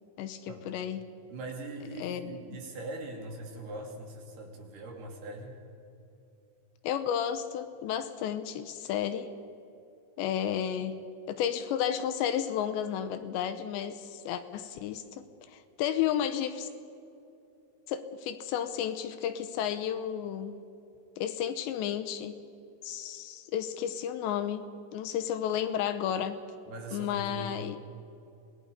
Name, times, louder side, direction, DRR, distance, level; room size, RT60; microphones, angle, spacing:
voice 1, 0.2-1.1 2.0-2.6 6.8-9.3 10.2-11.0 11.3-16.7 17.9-20.5 21.2-22.3 22.8-26.4 26.9-27.8, left 9 dB, 80° left, 10 dB, 2.9 m, -32 dB
voice 2, 1.3-5.6 26.7-27.6, right 2 dB, 60° right, 1 dB, 4.2 m, -41 dB
26.5 x 19.5 x 5.1 m, 2.8 s
omnidirectional pair, 5.4 m